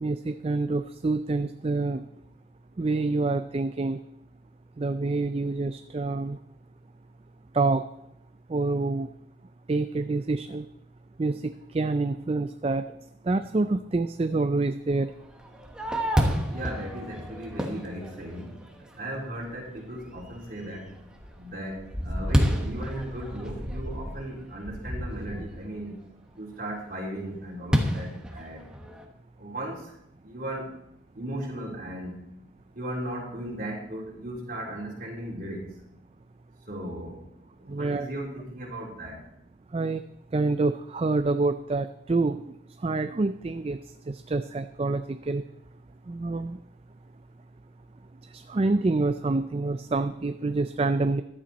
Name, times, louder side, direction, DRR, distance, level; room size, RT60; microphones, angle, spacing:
voice 1, 0.0-2.0 2.8-4.0 4.8-6.4 7.5-7.8 8.5-9.1 9.7-10.6 11.2-11.4 11.7-12.8 13.3-15.1 37.7-38.1 39.7-40.0 40.3-42.4 42.8-43.8 44.1-45.0 45.3-45.4 46.1-46.6 48.5-51.2, right 3 dB, 30° right, 10 dB, 0.4 m, -26 dB
Fireworks, 15.3-18.8 19.3-19.4 20.0-20.4 20.8-25.6 27.7-29.1, equal, 5° right, 1.3 m, -29 dB
voice 2, 16.5-18.6 19.0-21.0 21.4-26.0 26.4-28.7 29.4-29.9 30.2-30.7 31.1-32.2 32.7-35.7 36.7-37.3 37.6-39.2, right 1 dB, 45° right, -2 dB, 3.3 m, -36 dB
15.0 x 11.5 x 4.1 m, 0.80 s
head